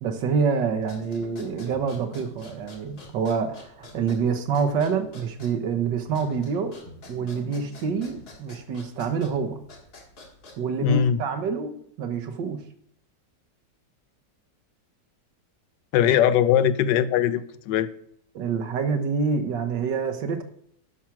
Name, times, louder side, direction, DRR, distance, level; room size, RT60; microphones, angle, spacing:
voice 1, 0.0-6.8 7.1-9.6 10.6-12.6 18.3-20.4, right 5 dB, 80° right, 7 dB, 1.8 m, -27 dB
sound 1, 0.7-10.8, left 2 dB, 60° left, 2.5 m, -47 dB
voice 2, 10.8-11.2 15.9-17.9, left 9 dB, 80° left, 14 dB, 1.3 m, -20 dB
11.0 x 6.0 x 5.9 m, 0.69 s
omnidirectional pair, 1.9 m